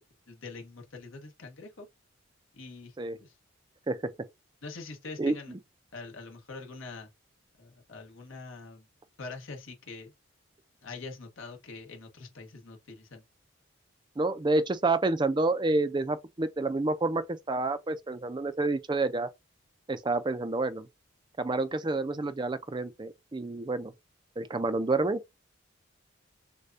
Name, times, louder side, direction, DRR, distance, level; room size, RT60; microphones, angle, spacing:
voice 1, 0.3-1.9 2.5-2.9 3.2-3.3 4.6-5.5 5.9-7.1 7.6-8.9 9.2-10.1 10.8-13.2, left 3 dB, 75° left, 1.2 m, -44 dB
voice 2, 14.2-19.3 19.9-20.9 21.4-23.9 24.4-25.2, right 2 dB, 20° right, 0.4 m, -29 dB
6.6 x 2.3 x 2.5 m
head